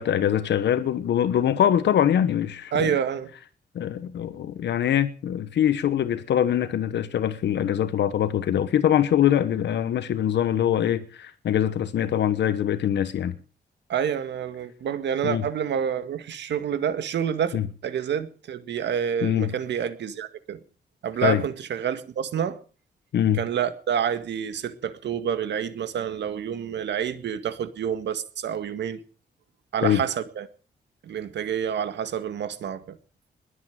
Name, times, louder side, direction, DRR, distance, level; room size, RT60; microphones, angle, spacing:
voice 1, 0.0-2.9 3.7-13.3 15.2-15.4 17.5-17.7 19.2-19.5 21.2-21.4 23.1-23.4 29.8-30.0, left 10 dB, 85° left, 1.2 m, -23 dB
voice 2, 2.7-3.3 13.9-17.6 17.8-20.6 21.0-22.6 23.3-29.0 29.7-30.5 31.0-33.0, right 8 dB, 90° right, 1.9 m, -28 dB
21.5 x 8.8 x 7.5 m
wide cardioid pair, 155°, 18 cm